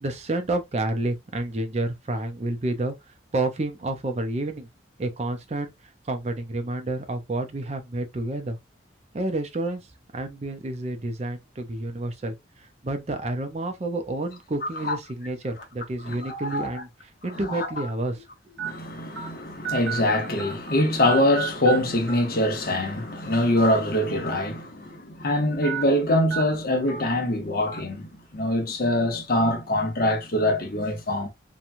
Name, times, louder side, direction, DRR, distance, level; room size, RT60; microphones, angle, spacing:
voice 1, 0.0-2.9 3.3-4.7 5.0-5.7 6.1-8.6 9.1-9.8 10.1-12.3 12.8-18.2, right 2 dB, 35° right, 0.5 m, -29 dB
sound 1, 15.6-15.8 16.6-16.7 17.8-17.9 18.6-18.7 19.2-19.3 19.6-20.8 21.1-21.8 22.1-22.2 23.5-23.8 24.2-24.3 25.6-25.8 26.3-26.4 26.9-27.0 27.7-27.8, right 8 dB, 90° right, 0.8 m, -32 dB
voice 2, 16.0-16.7 17.5-17.7 18.6-31.3, left 1 dB, 50° left, 0.8 m, -24 dB
2.9 x 2.2 x 2.5 m
head